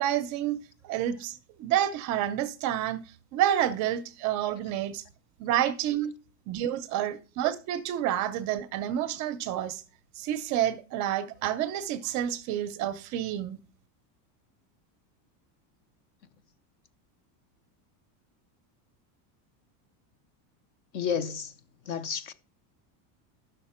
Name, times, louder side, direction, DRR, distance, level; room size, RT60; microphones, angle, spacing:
voice 1, 0.0-3.0 3.3-5.0 5.4-6.1 6.5-9.8 10.2-13.6, right 11 dB, 35° right, 0.6 m, -29 dB
voice 2, 20.9-21.5 21.9-22.3, left 7 dB, 40° left, 0.7 m, -31 dB
11.0 x 6.5 x 4.3 m
cardioid pair, 170°, 49 cm